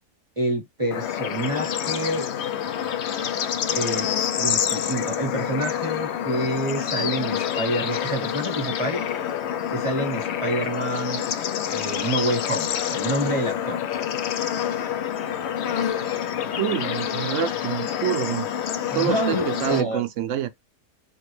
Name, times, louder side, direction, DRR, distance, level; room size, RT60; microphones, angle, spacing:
voice 1, 0.4-2.3 3.7-4.1 4.4-9.0 9.7-11.2 11.7-13.8 18.9-19.4 19.7-20.0, right 1 dB, 25° right, 0.7 m, -27 dB
Bird / Insect / Frog, 0.9-19.8, left 9 dB, 65° left, 0.7 m, -27 dB
voice 2, 16.6-18.5 18.9-20.5, right 10 dB, 65° right, 0.8 m, -26 dB
4.0 x 2.9 x 3.2 m
omnidirectional pair, 1.6 m